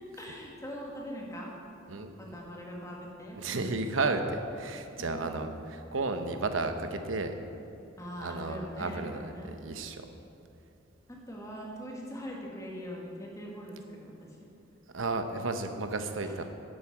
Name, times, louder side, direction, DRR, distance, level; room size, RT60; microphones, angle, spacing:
voice 1, 0.2-1.5 2.2-3.4 5.0-5.5 8.0-9.5 11.1-14.3 16.2-16.3, equal, 15° left, -2 dB, 1.8 m, -42 dB
voice 2, 1.9-2.4 3.4-7.3 8.2-10.1 14.9-16.4, right 3 dB, 85° right, 7 dB, 0.9 m, -33 dB
11.0 x 8.7 x 6.0 m, 2.8 s
head